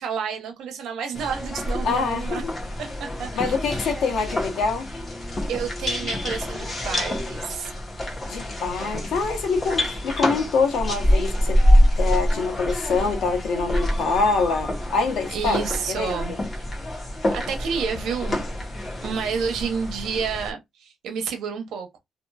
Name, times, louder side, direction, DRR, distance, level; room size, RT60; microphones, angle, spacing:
voice 1, 0.0-2.4 2.8-3.8 5.5-7.7 15.3-16.3 17.3-18.4 19.0-22.0, right 6 dB, 85° right, 0.7 m, -30 dB
sound 1, 1.1-20.5, left 1 dB, 30° left, 1.0 m, -26 dB
voice 2, 1.8-2.5 3.3-4.9 8.3-11.6 12.0-15.6 15.9-16.4, left 4 dB, 90° left, 0.9 m, -25 dB
2.9 x 2.5 x 2.3 m
cardioid pair, 120°, 0 cm